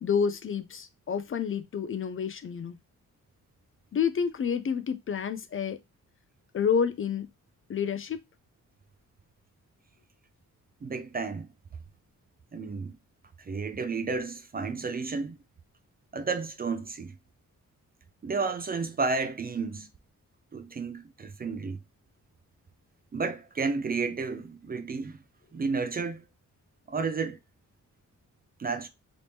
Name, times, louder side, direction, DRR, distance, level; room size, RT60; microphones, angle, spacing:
voice 1, 0.0-2.8 3.9-5.8 6.5-7.3 7.7-8.2, left 7 dB, 40° left, 0.4 m, -29 dB
voice 2, 10.8-11.5 12.5-13.0 13.4-15.4 16.1-17.2 18.2-19.9 20.5-21.8 23.1-25.2 25.5-26.2 26.9-27.4 28.6-28.9, right 4 dB, 30° right, 0.4 m, -32 dB
3.0 x 2.7 x 3.3 m
cardioid pair, 95°, 32 cm